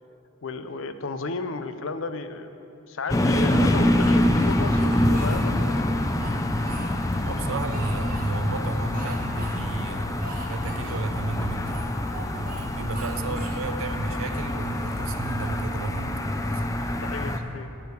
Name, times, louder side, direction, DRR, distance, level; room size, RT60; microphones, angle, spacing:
voice 1, 0.4-2.5 2.9-6.0 13.2-13.5 17.0-17.7, left 3 dB, 65° left, 10 dB, 0.6 m, -33 dB
sound 1, 3.1-17.4, left 1 dB, 15° left, 0.5 m, -25 dB
Speech, 4.0-5.4 6.0-7.2 7.7-8.3 8.9-9.5 9.8-9.9 10.2-11.0 11.7-12.7 12.9-13.6 14.1-15.5, right 2 dB, 40° right, 1.4 m, -42 dB
voice 2, 7.2-11.9 12.3-16.1 16.5-16.7, right 3 dB, 75° right, 9 dB, 0.6 m, -33 dB
12.0 x 5.0 x 8.1 m, 2.7 s
head